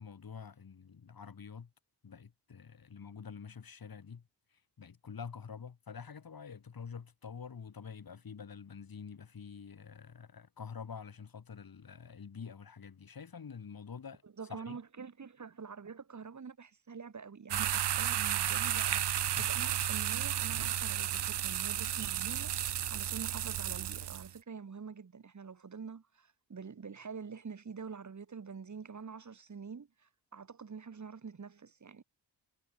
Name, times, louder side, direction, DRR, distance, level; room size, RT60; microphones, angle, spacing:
voice 1, 0.0-1.7 2.0-14.2 14.5-14.8 19.3-19.6, left 6 dB, 55° left, 4.6 m, -47 dB
voice 2, 14.2-32.0, right 5 dB, 40° right, 2.7 m, -46 dB
sound 1, 17.5-24.3, right 11 dB, 70° right, 0.8 m, -33 dB
wide cardioid pair, 155°, 43 cm